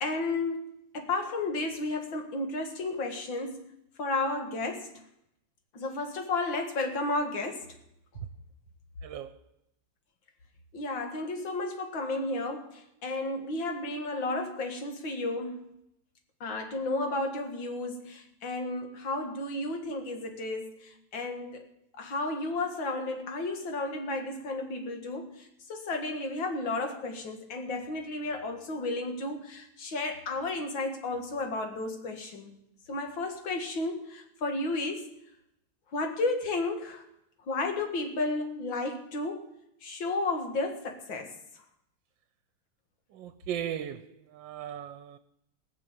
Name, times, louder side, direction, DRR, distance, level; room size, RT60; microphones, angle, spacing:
voice 1, 0.0-0.6 0.9-3.7 4.0-4.9 5.7-7.6 10.7-15.7 16.4-21.6 22.0-32.6 32.9-35.1 35.9-37.0 37.5-39.5 39.8-41.3, left 2 dB, 75° left, 2.5 m, -33 dB
voice 2, 43.2-44.0 44.4-45.2, right 10 dB, 75° right, 1.4 m, -36 dB
18.5 x 6.9 x 7.3 m
omnidirectional pair, 2.1 m